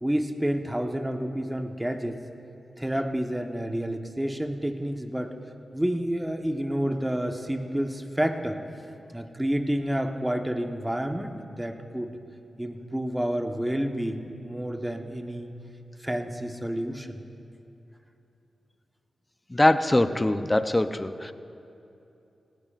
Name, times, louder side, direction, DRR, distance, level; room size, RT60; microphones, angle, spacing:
voice 1, 0.0-2.2 2.8-5.3 5.7-8.6 9.1-12.2 12.6-15.5 16.0-17.2, equal, 10° right, 5 dB, 1.2 m, -29 dB
voice 2, 19.5-21.3, left 1 dB, 25° left, 11 dB, 0.7 m, -22 dB
18.0 x 16.5 x 2.5 m, 2.8 s
supercardioid pair, 40°, 0 cm